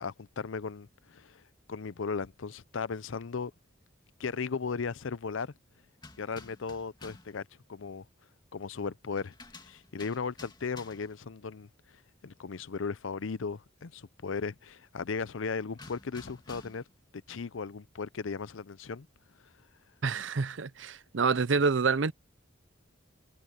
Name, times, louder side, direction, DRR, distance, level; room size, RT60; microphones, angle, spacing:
voice 1, 0.0-1.4 1.7-3.5 4.2-5.5 6.2-8.0 8.5-9.3 9.6-11.7 12.2-16.8 17.3-19.1, left 5 dB, 85° left, 0.6 m, -36 dB
sound 1, 6.0-7.4 9.2-11.2 15.8-16.9, left 3 dB, 20° left, 2.5 m, -51 dB
voice 2, 20.0-22.1, right 4 dB, 70° right, 0.7 m, -27 dB
head